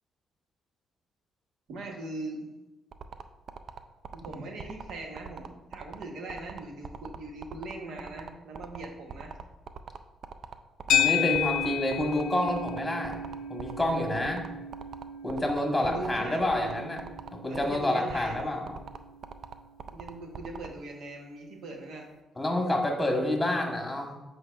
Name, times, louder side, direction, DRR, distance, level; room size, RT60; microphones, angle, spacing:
voice 1, 1.7-2.5 4.1-9.4 15.8-16.9 17.4-18.6 19.9-22.1, right 2 dB, 75° right, 2 dB, 1.1 m, -40 dB
sound 1, 2.9-20.7, right 7 dB, 55° right, 0.4 m, -41 dB
sound 2, 10.9-19.3, left 7 dB, 85° left, 0.5 m, -33 dB
voice 2, 10.9-13.2 13.5-14.5 15.2-17.0 17.4-18.6 22.4-24.1, left 1 dB, 10° left, 1 dB, 1.4 m, -28 dB
7.7 x 5.1 x 2.5 m, 1.0 s
cardioid pair, 90°, 0 cm